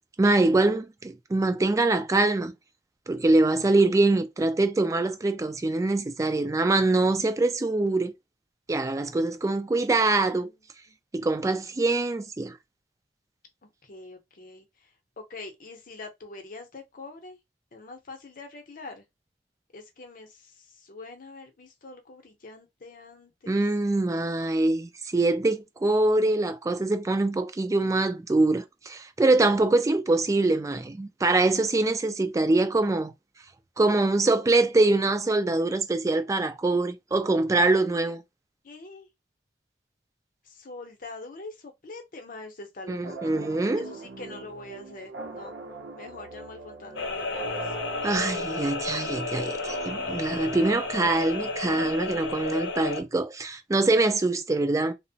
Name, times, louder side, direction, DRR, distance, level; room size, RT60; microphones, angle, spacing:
voice 1, 0.2-2.5 3.1-8.1 8.7-10.5 11.1-12.6 23.5-33.1 33.8-38.2 42.9-43.9 48.0-54.9, right 2 dB, 20° right, 0.3 m, -24 dB
voice 2, 13.6-17.4 17.7-19.1 19.7-23.6 38.6-39.1 40.4-43.2 43.7-45.5 46.0-47.7, left 3 dB, 50° left, 0.7 m, -44 dB
sound 1, 43.0-52.5, right 3 dB, 75° right, 0.6 m, -41 dB
sound 2, 47.0-53.0, left 3 dB, 90° left, 0.6 m, -32 dB
2.9 x 2.0 x 2.7 m
head